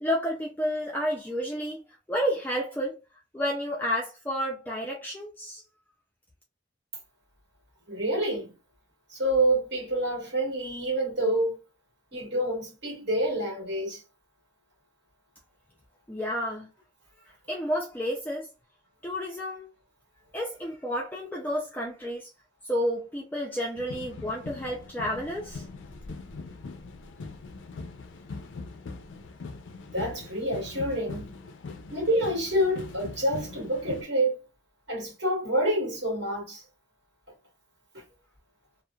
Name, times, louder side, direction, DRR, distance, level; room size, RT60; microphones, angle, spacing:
voice 1, 0.0-1.8 2.1-3.0 3.3-5.6 16.1-16.7 17.5-18.5 19.0-19.7 20.3-22.3 22.6-25.6, equal, 10° left, 0.4 m, -30 dB
voice 2, 7.9-8.5 9.1-11.6 12.1-14.0 29.9-31.3 31.9-34.4 34.9-36.6 37.9-38.0, right 1 dB, 60° right, 1.4 m, -27 dB
sound 1, 23.8-34.0, left 3 dB, 80° left, 0.4 m, -41 dB
2.9 x 2.0 x 2.3 m
head